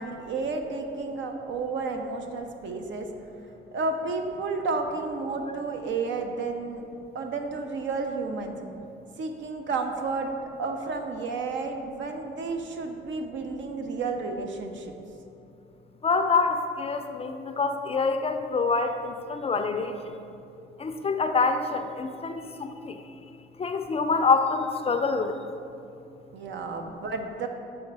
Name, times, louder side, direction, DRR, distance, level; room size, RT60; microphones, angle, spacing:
voice 1, 0.0-3.1 3.7-6.8 7.1-8.6 9.2-10.3 10.6-14.9 26.3-27.5, right 3 dB, 70° right, 5 dB, 0.7 m, -31 dB
voice 2, 16.0-20.1 20.8-23.0 23.6-25.3, left 4 dB, 30° left, 7 dB, 0.4 m, -26 dB
7.0 x 3.3 x 5.4 m, 2.7 s
cardioid pair, 90°, 20 cm